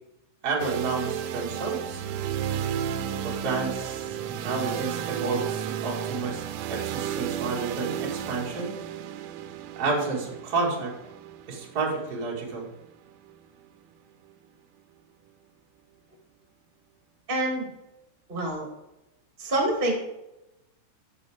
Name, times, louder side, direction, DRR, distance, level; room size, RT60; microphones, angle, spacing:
voice 1, 0.4-2.0 3.2-6.4 6.7-8.8 9.7-10.9 11.5-12.7, right 4 dB, 65° right, -3 dB, 0.9 m, -30 dB
sound 1, 0.6-14.5, right 9 dB, 90° right, 3.2 m, -33 dB
voice 2, 17.3-17.7 18.3-18.6 19.4-19.9, right 1 dB, 25° right, 0 dB, 1.2 m, -26 dB
12.5 x 7.4 x 3.6 m, 0.91 s
omnidirectional pair, 5.8 m